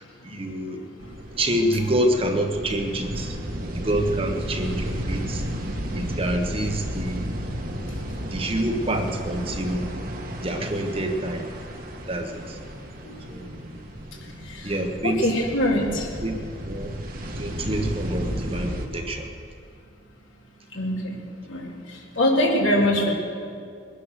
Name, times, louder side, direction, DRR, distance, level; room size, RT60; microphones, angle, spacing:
voice 1, 0.2-0.8 1.4-3.4 3.7-5.4 5.9-7.2 8.3-9.9 10.4-11.5 12.1-12.6 13.3-13.5 14.6-15.4 16.2-16.3 16.6-17.0 17.4-19.3, right 1 dB, 30° right, 4 dB, 1.1 m, -27 dB
sound 1, 1.0-18.9, equal, 45° right, 1.5 m, -33 dB
voice 2, 15.0-16.1 20.7-21.2 21.5-21.7 22.2-23.1, left 1 dB, 75° left, -2 dB, 3.2 m, -22 dB
22.0 x 10.0 x 6.5 m, 2.3 s
head